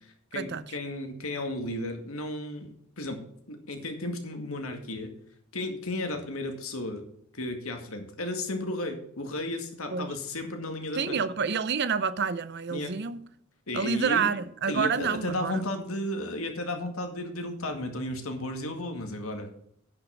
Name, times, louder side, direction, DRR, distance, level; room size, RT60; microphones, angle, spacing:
voice 1, 0.3-5.1 5.5-7.1 7.3-11.2 12.7-13.0 13.7-14.3 14.7-19.5, left 1 dB, 75° left, 2.1 m, -34 dB
voice 2, 10.9-13.2 13.7-15.6, right 6 dB, 50° right, 0.6 m, -28 dB
10.5 x 5.8 x 7.0 m
head